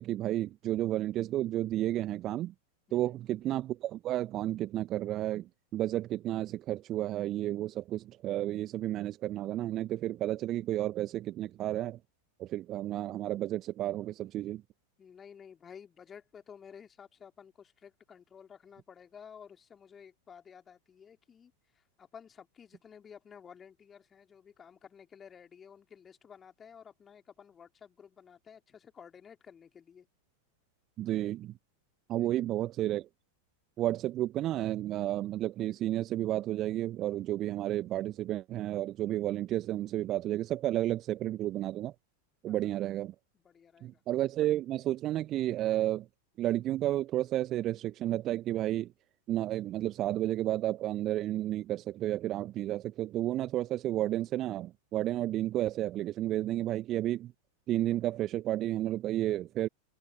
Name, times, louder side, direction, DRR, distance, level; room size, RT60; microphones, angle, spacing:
voice 1, 0.0-2.5 2.9-12.0 12.4-14.6 31.0-31.5 32.1-33.1 33.8-41.9 42.4-43.1 43.8-46.1 46.4-48.9 49.3-57.3 57.7-59.7, right 13 dB, 35° right, 1.4 m, -32 dB
voice 2, 2.9-3.2 15.0-30.1 32.2-32.5 42.5-42.9 43.3-44.0, left 7 dB, 20° left, 3.0 m, -53 dB
figure-of-eight pair, 90°, 0 cm